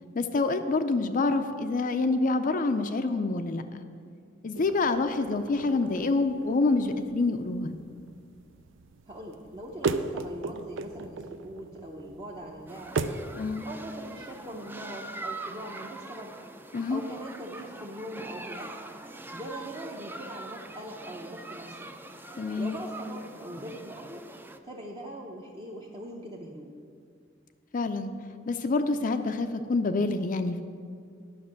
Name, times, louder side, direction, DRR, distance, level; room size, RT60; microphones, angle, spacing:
voice 1, 0.1-3.8 4.4-7.7 13.4-13.7 16.7-17.0 22.4-22.8 27.7-28.1 28.5-30.6, left 3 dB, 45° left, 8 dB, 0.4 m, -27 dB
sound 1, 4.5-13.3, right 4 dB, 70° right, 0.5 m, -37 dB
voice 2, 9.1-13.0 13.6-16.3 16.9-18.8 19.3-21.9 22.6-24.2 24.6-26.7, right 1 dB, 25° right, -3 dB, 0.8 m, -41 dB
sound 2, 12.7-24.6, right 2 dB, 10° right, 0.4 m, -43 dB
10.5 x 6.0 x 7.5 m, 2.2 s
head